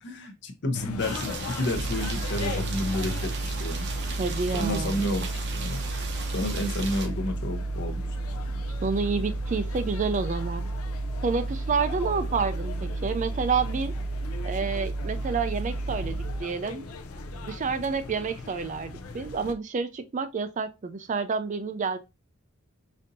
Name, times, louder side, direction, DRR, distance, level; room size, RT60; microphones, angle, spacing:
voice 1, 0.0-3.9 4.5-5.9 6.3-8.0, left 1 dB, 55° left, 0.8 m, -31 dB
sound 1, 0.7-19.5, left 3 dB, 85° left, 0.5 m, -39 dB
sound 2, 1.0-7.1, right 5 dB, 55° right, 0.7 m, -38 dB
sound 3, 1.7-16.4, right 2 dB, 80° right, 0.9 m, -32 dB
voice 2, 4.2-5.0 8.8-10.7 11.2-13.9 14.4-16.9 17.4-22.0, right 5 dB, 35° right, 0.4 m, -29 dB
5.2 x 2.7 x 2.6 m
head